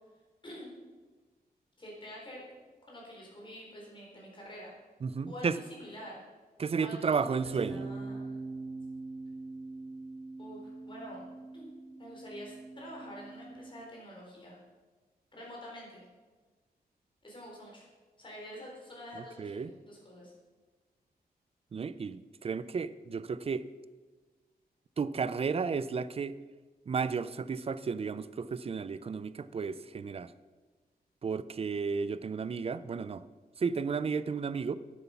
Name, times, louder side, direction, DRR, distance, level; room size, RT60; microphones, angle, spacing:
voice 1, 1.8-2.4 2.9-4.7 5.3-6.2 6.7-8.4 10.4-11.2 11.5-11.7 12.0-14.6 15.3-16.0 17.2-17.9 18.2-20.3, equal, 30° left, -3 dB, 4.0 m, -47 dB
voice 2, 5.0-5.5 6.6-7.9 19.2-19.7 21.7-23.7 25.0-26.4 26.9-30.3 31.2-33.2 33.6-34.8, right 5 dB, 40° right, 15 dB, 0.4 m, -33 dB
sound 1, 7.5-13.7, right 3 dB, 60° right, 1.9 m, -43 dB
10.5 x 8.1 x 5.8 m, 1.3 s
wide cardioid pair, 135°, 16 cm